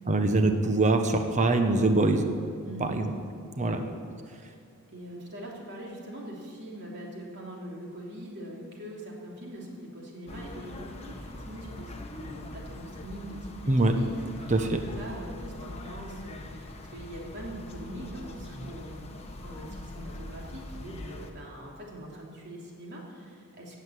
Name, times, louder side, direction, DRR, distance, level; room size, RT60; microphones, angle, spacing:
voice 1, 0.1-2.3 2.8-3.1 3.6-3.8 13.7-13.9 14.5-14.8, right 2 dB, 35° right, 6 dB, 1.1 m, -23 dB
voice 2, 2.6-3.0 3.6-3.9 4.2-4.6 4.9-14.5 14.9-23.8, right 1 dB, 55° right, -2 dB, 3.2 m, -43 dB
sound 1, 10.3-21.3, left 1 dB, 30° left, 1.2 m, -42 dB
16.5 x 8.2 x 8.2 m, 2.1 s
head